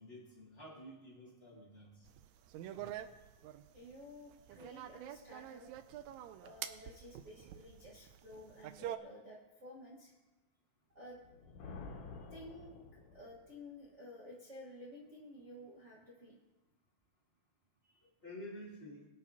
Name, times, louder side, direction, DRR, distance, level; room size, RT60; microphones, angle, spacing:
voice 1, 0.0-2.1 2.7-2.8 18.2-19.1, equal, 20° left, -4 dB, 2.1 m, -50 dB
sound 1, 2.1-9.0, right 12 dB, 85° right, 1.6 m, -47 dB
voice 2, 3.7-5.7 6.4-10.1 10.9-11.2 12.1-12.8 13.1-16.4 17.8-18.0, left 1 dB, 65° right, -4 dB, 0.7 m, -53 dB
Thunder, 11.1-13.5, left 4 dB, 75° left, 2.8 m, -50 dB
22.0 x 8.8 x 2.8 m, 1.1 s
omnidirectional pair, 3.8 m